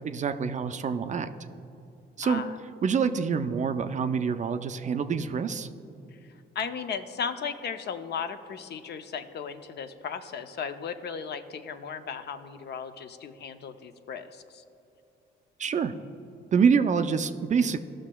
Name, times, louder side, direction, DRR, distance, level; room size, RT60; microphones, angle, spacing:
voice 1, 0.0-1.3 2.2-2.4 2.8-5.7 15.6-15.9 16.5-17.8, right 6 dB, 40° right, 9 dB, 0.4 m, -26 dB
voice 2, 2.2-2.6 6.6-14.6, left 6 dB, 55° left, 9 dB, 0.5 m, -36 dB
14.0 x 6.2 x 2.2 m, 2.7 s
cardioid pair, 90°, 20 cm